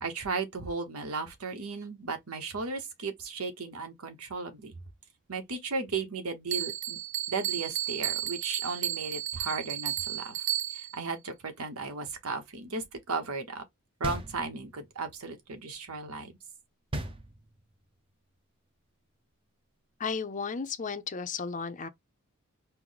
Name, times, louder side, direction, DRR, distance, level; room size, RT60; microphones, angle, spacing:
voice 1, 0.0-4.7 5.3-7.0 7.3-10.5 10.7-13.6 14.0-16.4, right 4 dB, 80° right, 1.1 m, -35 dB
Bell, 6.5-11.0, right 13 dB, 55° right, 0.3 m, -33 dB
sound 1, 14.0-14.9 16.9-17.8, right 1 dB, 25° right, 0.7 m, -37 dB
voice 2, 20.0-21.9, left 5 dB, 35° left, 0.6 m, -34 dB
4.5 x 2.1 x 3.9 m
head